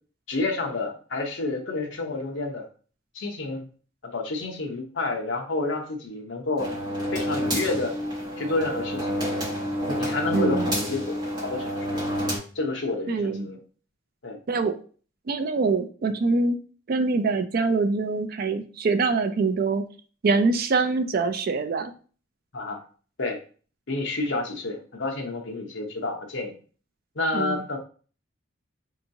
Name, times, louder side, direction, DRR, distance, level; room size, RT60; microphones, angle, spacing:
voice 1, 0.3-2.7 3.1-3.7 4.1-6.8 7.1-8.0 8.4-9.2 9.9-11.1 11.4-11.8 12.5-13.6 14.2-14.4 22.5-22.8 23.2-23.4 23.9-26.5 27.1-27.8, left 2 dB, 65° left, 2 dB, 0.8 m, -29 dB
sound 1, 6.6-12.4, equal, 20° right, 1.6 m, -28 dB
voice 2, 10.3-10.7 13.1-13.5 14.5-14.7 15.3-16.6 16.9-19.8 20.2-21.9 27.3-27.6, right 4 dB, 50° right, 9 dB, 0.4 m, -24 dB
4.5 x 2.9 x 2.6 m, 0.40 s
head